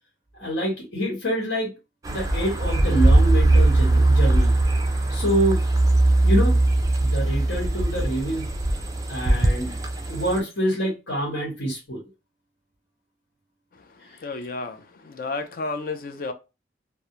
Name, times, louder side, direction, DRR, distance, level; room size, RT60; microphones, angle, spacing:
voice 1, 0.4-1.7 2.1-4.5 5.1-5.6 6.2-6.6 7.0-8.5 9.1-9.8 10.1-12.0, equal, 80° left, 1.2 m, -26 dB
sound 1, 2.0-10.4, right 2 dB, 20° right, 0.3 m, -20 dB
voice 2, 14.2-16.3, left 3 dB, 50° left, 0.4 m, -32 dB
2.3 x 2.0 x 2.9 m
head